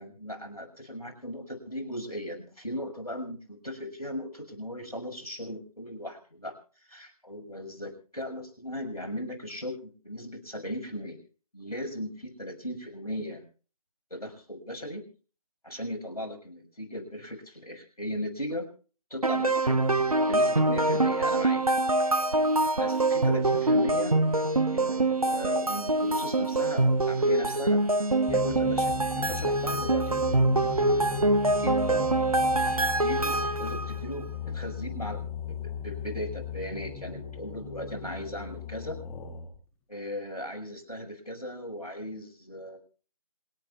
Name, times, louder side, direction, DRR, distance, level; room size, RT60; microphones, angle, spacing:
voice 1, 0.0-6.5 6.9-11.2 11.5-13.4 14.1-15.0 15.6-18.7 19.1-19.8 20.3-21.6 22.8-24.2 24.6-27.8 28.3-30.7 31.3-32.0 32.6-39.0 39.9-42.8, equal, 85° left, 4 dB, 6.6 m, -37 dB
sound 1, 19.2-33.9, right 2 dB, 75° right, 1.3 m, -25 dB
sound 2, 28.3-39.6, left 7 dB, 10° left, 1.9 m, -37 dB
27.0 x 9.7 x 4.4 m, 0.40 s
figure-of-eight pair, 155°, 19 cm